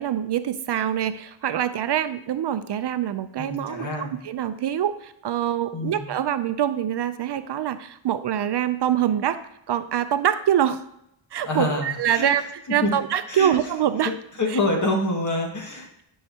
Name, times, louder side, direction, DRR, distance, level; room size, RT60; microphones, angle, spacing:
voice 1, 0.0-9.4 9.7-10.8 11.3-14.1 14.5-14.6, right 10 dB, 60° right, 11 dB, 0.5 m, -25 dB
voice 2, 3.4-4.1 5.7-6.0 11.4-11.9 12.1-12.3 12.8-12.9 13.3-13.5 14.4-16.0, left 2 dB, 40° left, 1 dB, 1.8 m, -26 dB
12.0 x 5.7 x 2.8 m, 0.77 s
wide cardioid pair, 120°, 47 cm